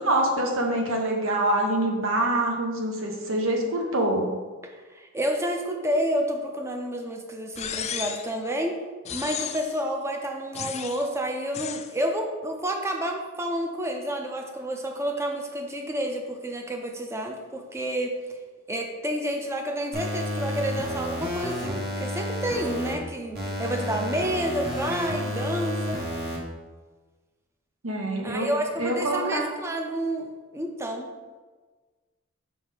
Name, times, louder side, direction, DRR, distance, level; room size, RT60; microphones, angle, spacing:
voice 1, 0.0-4.3 27.8-28.5 28.8-29.5, right 1 dB, 75° right, 1 dB, 1.1 m, -25 dB
voice 2, 4.6-8.8 9.1-18.1 18.7-26.0 28.2-31.1, right 1 dB, 15° right, 2 dB, 0.7 m, -30 dB
sound 1, 7.6-8.4 9.0-9.8 10.5-11.1 11.5-11.9, left 8 dB, 30° left, 0.3 m, -34 dB
sound 2, 19.9-22.9 23.3-26.4, left 1 dB, 50° right, 1.4 m, -31 dB
5.7 x 5.5 x 3.5 m, 1.4 s
head